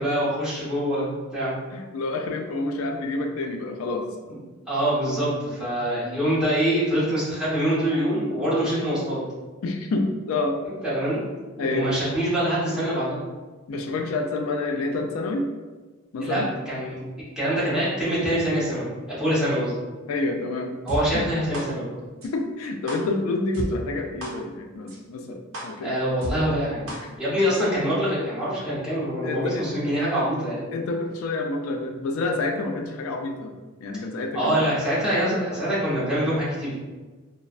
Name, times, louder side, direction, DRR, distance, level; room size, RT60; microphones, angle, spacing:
voice 1, 0.0-1.6 4.3-4.4 4.7-9.2 10.8-11.2 11.6-13.2 16.2-17.0 17.4-18.9 19.2-19.7 20.8-21.9 25.8-26.9 27.2-30.7 34.3-36.7, equal, 5° right, -11 dB, 1.0 m, -24 dB
voice 2, 1.7-4.1 9.6-10.6 11.6-11.9 13.7-15.5 16.1-16.5 20.1-20.8 21.1-21.3 22.2-25.9 26.9-27.1 29.2-29.6 30.7-34.6, left 2 dB, 90° left, 4 dB, 0.3 m, -28 dB
sound 1, 20.9-21.0 21.5-21.6 22.2-22.3 22.9-23.0 23.5-23.7 24.2-24.3 24.9-25.0 25.5-25.6 26.2-26.3 26.9-27.0 27.5-27.6, equal, 70° right, 0.7 m, -31 dB
3.1 x 2.0 x 2.4 m, 1.3 s
head